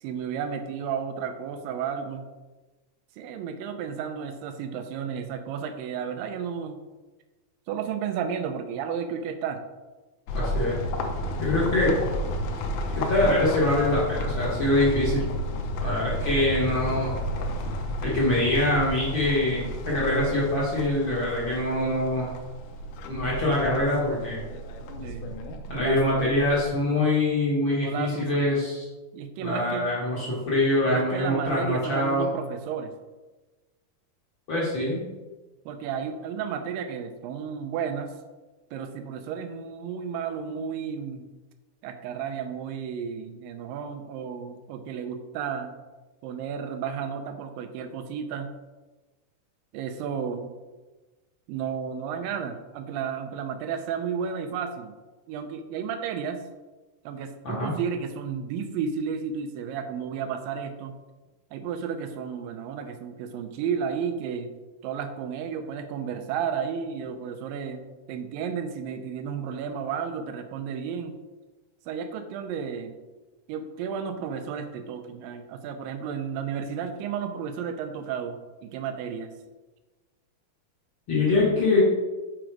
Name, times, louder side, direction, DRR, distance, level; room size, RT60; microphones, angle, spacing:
voice 1, 0.0-2.2 3.2-6.8 7.7-9.6 25.0-25.3 25.7-26.0 27.7-28.7 29.1-29.9 30.8-32.9 35.7-38.1 38.7-41.3 41.8-45.7 46.2-48.5 49.7-50.5 51.5-54.9 55.3-56.4 57.1-60.9 61.5-64.5 64.8-71.2 71.9-72.9 73.5-79.3, right 7 dB, 80° right, 7 dB, 2.2 m, -32 dB
sound 1, 10.3-26.7, equal, 90° left, 1.7 m, -32 dB
voice 2, 10.3-10.8 11.4-12.0 12.9-15.2 15.8-17.1 18.0-22.3 23.1-24.4 25.7-28.8 29.4-32.3 34.5-35.0 57.4-57.8 81.1-81.8, left 2 dB, 60° left, -7 dB, 1.3 m, -24 dB
6.3 x 5.0 x 4.6 m, 1.2 s
omnidirectional pair, 4.4 m